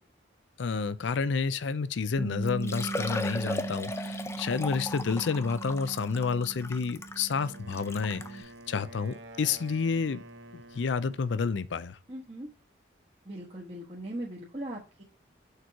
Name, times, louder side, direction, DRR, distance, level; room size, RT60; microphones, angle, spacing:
voice 1, 0.6-10.2 10.5-12.0, left 5 dB, 75° left, 0.5 m, -30 dB
Liquid, 2.0-2.1 2.5-8.4 9.1-9.2 9.6-9.7 11.3-11.4 11.6-11.7, left 2 dB, 15° left, 0.4 m, -38 dB
Bass guitar, 2.2-8.4, right 4 dB, 10° right, 0.9 m, -39 dB
Wind instrument woodwind instrument, 7.4-11.6, right 1 dB, 85° right, 0.9 m, -49 dB
voice 2, 12.1-12.5 13.2-15.0, right 1 dB, 35° right, 1.2 m, -39 dB
6.6 x 4.5 x 4.6 m
head